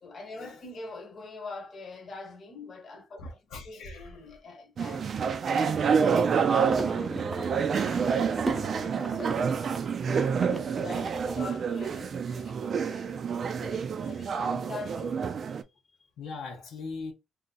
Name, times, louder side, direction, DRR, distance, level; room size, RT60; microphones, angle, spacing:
voice 1, 0.0-3.2 3.6-9.5 10.0-15.2, left 3 dB, 45° left, 1.0 m, -44 dB
voice 2, 3.2-4.4 8.1-8.3 16.2-17.1, left 3 dB, 80° left, 0.9 m, -41 dB
sound 1, 4.8-15.6, right 6 dB, 50° right, 0.4 m, -28 dB
sound 2, 6.7-11.4, right 1 dB, 10° right, 0.7 m, -39 dB
2.8 x 2.4 x 3.9 m
cardioid pair, 90°, 0 cm